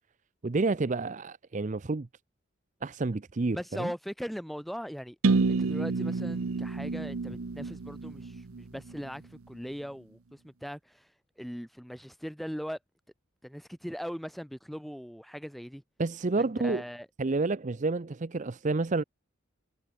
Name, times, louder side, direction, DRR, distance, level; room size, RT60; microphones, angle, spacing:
voice 1, 0.4-2.1 2.8-3.9 16.0-16.8 17.2-19.0, right 3 dB, 35° right, 0.5 m, -29 dB
voice 2, 3.5-5.2 5.5-9.2 9.5-10.2 10.4-10.8 11.4-12.8 13.4-15.8 16.6-17.1, equal, ahead, 3.0 m, -39 dB
sound 1, 5.2-9.1, right 3 dB, 90° right, 0.7 m, -29 dB
head